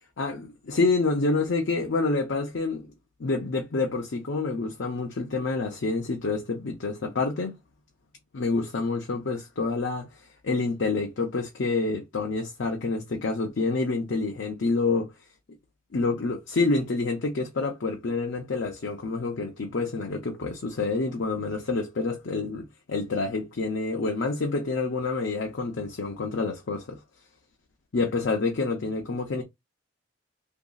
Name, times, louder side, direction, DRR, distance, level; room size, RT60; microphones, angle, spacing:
voice 1, 0.2-2.9 3.2-7.6 8.3-15.1 15.9-27.0 27.9-29.4, left 3 dB, 60° left, 0.5 m, -28 dB
2.9 x 2.6 x 2.3 m
head